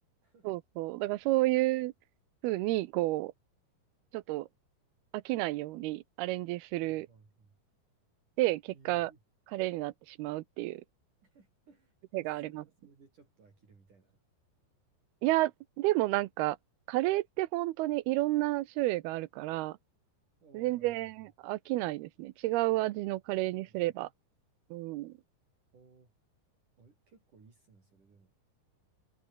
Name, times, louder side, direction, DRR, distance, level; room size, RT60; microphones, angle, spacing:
voice 1, 0.4-1.9 2.4-3.3 4.1-4.5 5.1-7.1 8.4-9.1 9.5-10.8 12.1-12.6 15.2-15.5 15.8-16.6 16.9-19.8 20.5-24.1 24.7-25.1, right 18 dB, 90° right, 2.7 m, -31 dB
voice 2, 6.8-7.6 8.7-9.2 11.2-14.2 20.4-21.1 23.4-23.8 25.7-26.1 26.8-28.3, right 4 dB, 50° right, 7.2 m, -61 dB
omnidirectional pair, 4.5 m